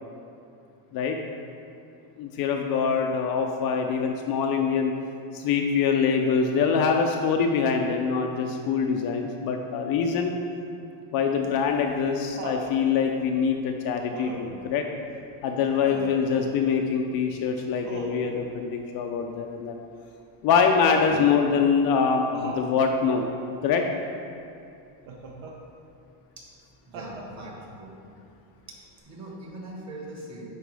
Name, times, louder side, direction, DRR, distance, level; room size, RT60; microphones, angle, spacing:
voice 1, 2.2-4.9 5.3-10.3 11.1-14.9 15.4-19.8 20.4-23.2 23.6-23.8, left 6 dB, 50° left, 3 dB, 0.5 m, -24 dB
Laughter, 11.4-12.8 14.1-14.6 15.8-16.3 17.8-18.4 20.9-21.4 22.3-22.7 25.1-25.6 26.9-27.6 29.0-29.1, right 3 dB, 65° right, 1.2 m, -38 dB
voice 2, 26.8-27.9 28.7-28.8 29.0-30.4, right 1 dB, 35° right, -2 dB, 1.7 m, -41 dB
10.0 x 4.2 x 3.4 m, 2.5 s
supercardioid pair, 125°, 50 cm